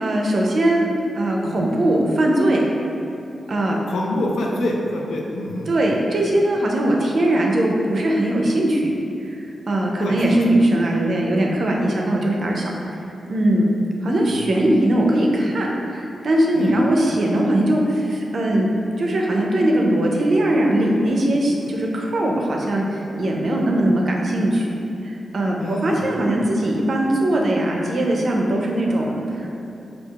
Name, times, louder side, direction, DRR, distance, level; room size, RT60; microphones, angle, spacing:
voice 1, 0.0-0.9 1.2-2.6 3.5-3.8 5.7-8.9 9.2-12.7 13.3-13.7 14.0-18.7 19.0-24.7 25.0-29.5, right 1 dB, 60° right, -1 dB, 0.5 m, -20 dB
voice 2, 3.9-5.7 10.0-10.4 16.5-16.7 25.6-26.1, left 1 dB, 85° left, -1 dB, 0.4 m, -26 dB
4.6 x 2.4 x 2.3 m, 2.8 s
wide cardioid pair, 95°, 0 cm